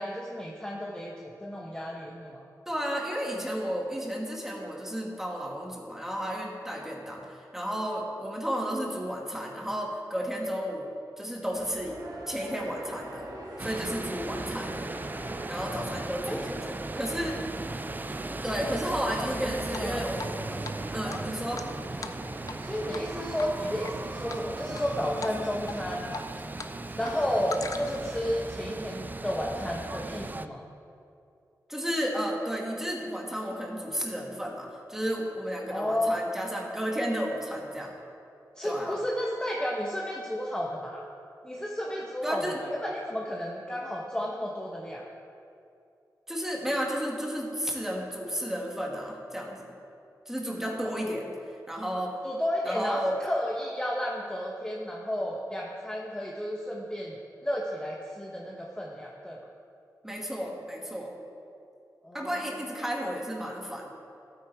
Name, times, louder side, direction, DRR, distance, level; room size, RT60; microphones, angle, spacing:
voice 1, 0.0-2.4 16.2-16.5 19.2-20.3 22.6-26.1 27.0-30.6 35.7-36.2 38.6-41.0 41.4-45.1 52.2-57.2 57.4-59.4 62.0-62.7, equal, 10° left, -2 dB, 1.0 m, -32 dB
voice 2, 2.7-10.9 11.2-12.0 12.3-13.3 13.6-15.0 15.5-17.4 18.4-20.6 20.9-21.6 31.7-37.9 38.6-39.0 42.2-42.6 46.3-49.8 50.3-51.3 51.7-52.2 52.6-53.2 60.0-61.1 62.1-63.9, equal, 5° right, -1 dB, 2.1 m, -33 dB
sound 1, 11.5-26.1, right 1 dB, 65° right, 2.1 m, -43 dB
sound 2, 13.6-30.5, right 2 dB, 25° right, 0.4 m, -37 dB
Drip, 19.7-20.4 20.6-20.7 21.1-22.6 22.9-23.1 23.4-23.9 24.3-24.8 25.2-25.4 25.7-26.7 27.0-28.1, left 4 dB, 55° left, 0.6 m, -40 dB
12.0 x 9.0 x 4.7 m, 2.6 s
cardioid pair, 65°, 7 cm